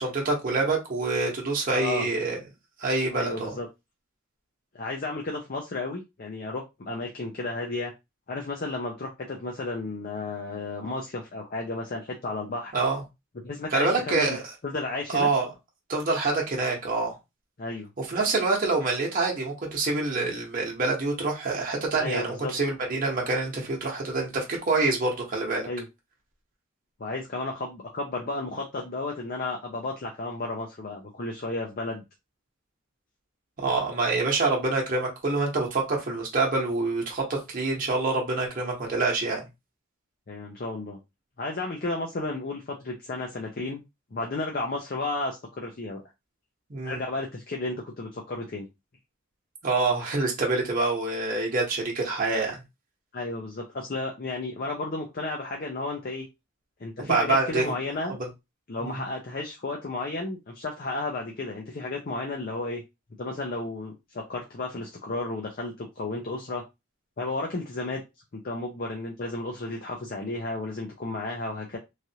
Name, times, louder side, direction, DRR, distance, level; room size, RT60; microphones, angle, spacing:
voice 1, 0.0-2.4 2.8-3.5 12.7-13.0 13.7-14.4 15.1-15.5 15.9-17.2 18.0-25.7 33.6-39.4 46.7-47.0 49.6-52.6 57.0-57.8 58.1-58.2 58.8-59.0, right 3 dB, 40° right, 1.0 m, -26 dB
voice 2, 1.7-2.1 3.1-3.7 4.7-7.9 8.3-12.7 13.4-14.4 14.6-15.3 17.6-17.9 22.0-22.5 25.6-25.8 27.0-32.0 40.3-41.0 41.4-43.8 44.1-46.0 46.8-48.7 53.1-56.3 56.8-58.2 58.7-62.8 63.2-66.6 67.2-68.0 68.3-71.8, left 2 dB, 45° left, 0.6 m, -33 dB
3.2 x 2.4 x 2.7 m
head